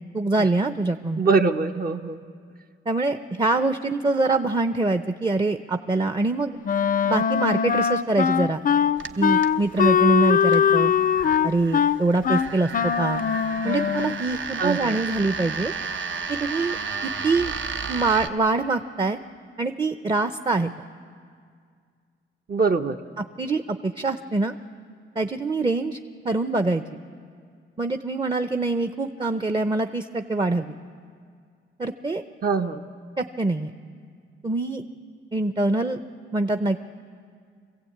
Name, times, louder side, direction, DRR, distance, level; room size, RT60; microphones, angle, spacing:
voice 1, 0.1-1.2 2.9-6.6 7.1-8.6 9.2-10.9 11.4-13.2 13.6-15.7 16.3-16.8 17.2-17.5 17.9-19.2 19.6-20.7 23.4-24.5 25.2-26.0 26.2-26.8 27.8-30.8 31.8-32.2 33.2-33.7 34.4-34.8 35.3-36.0 36.3-36.8, right 3 dB, 20° right, 8 dB, 0.7 m, -24 dB
voice 2, 1.2-2.2 14.6-15.0 22.5-23.0 32.4-32.8, right 4 dB, 45° right, 5 dB, 1.0 m, -23 dB
Wind instrument woodwind instrument, 6.6-14.2, left 7 dB, 40° left, 0.5 m, -21 dB
sound 1, 9.0-18.3, right 5 dB, 65° right, 1.1 m, -33 dB
25.0 x 16.0 x 8.7 m, 2.1 s
cardioid pair, 100°, 21 cm